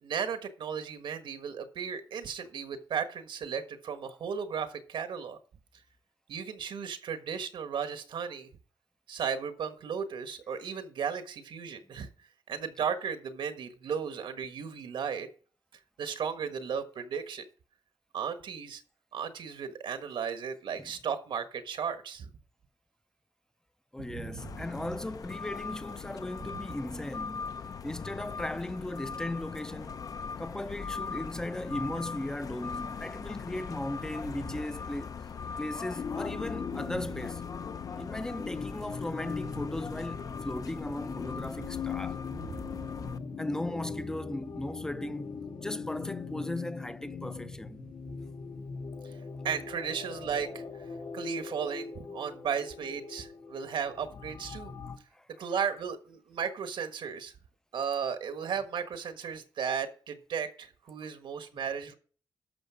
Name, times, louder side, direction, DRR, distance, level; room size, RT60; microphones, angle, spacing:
voice 1, 0.0-5.4 6.3-8.5 9.1-12.1 12.5-15.3 16.0-17.4 18.1-18.8 19.1-22.3 24.0-24.6 26.4-26.5 36.9-37.0 42.3-42.9 49.4-50.6 51.1-54.7 55.4-57.3 57.7-61.9, right 7 dB, 85° right, 1.5 m, -35 dB
voice 2, 23.9-27.5 27.8-30.0 30.4-35.1 35.6-37.5 38.0-42.2 43.4-45.4 45.6-47.8 55.1-55.3, left 1 dB, 5° left, 0.5 m, -37 dB
sound 1, 24.4-43.2, left 6 dB, 50° left, 0.6 m, -40 dB
sound 2, 35.9-55.0, left 5 dB, 85° left, 2.9 m, -40 dB
12.0 x 6.6 x 5.0 m
wide cardioid pair, 170°, 8 cm